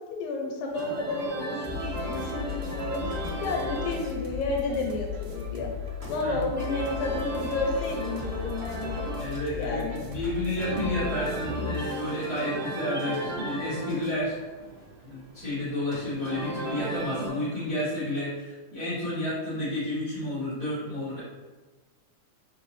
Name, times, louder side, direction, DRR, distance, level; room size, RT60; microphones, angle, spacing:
voice 1, 0.2-9.0 9.5-10.0, left 2 dB, 90° left, 1 dB, 2.3 m, -31 dB
sound 1, 0.7-17.3, right 2 dB, 60° right, 0.6 m, -36 dB
sound 2, 1.6-12.2, left 7 dB, 75° right, 1.8 m, -36 dB
voice 2, 9.2-14.4 15.1-21.2, left 1 dB, 40° right, -13 dB, 1.0 m, -31 dB
4.9 x 2.7 x 3.0 m, 1.3 s
omnidirectional pair, 3.6 m